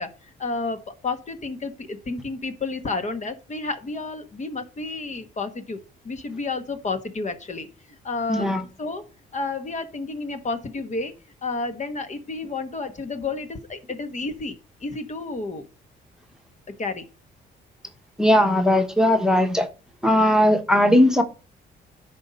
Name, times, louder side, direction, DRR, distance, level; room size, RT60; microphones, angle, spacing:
voice 1, 0.0-11.1 11.4-15.6 16.8-17.1, left 3 dB, 35° left, 1.3 m, -31 dB
voice 2, 8.3-8.6 18.2-19.7 20.0-21.2, left 1 dB, 5° right, 1.2 m, -18 dB
10.5 x 4.2 x 5.2 m
cardioid pair, 90°, 20 cm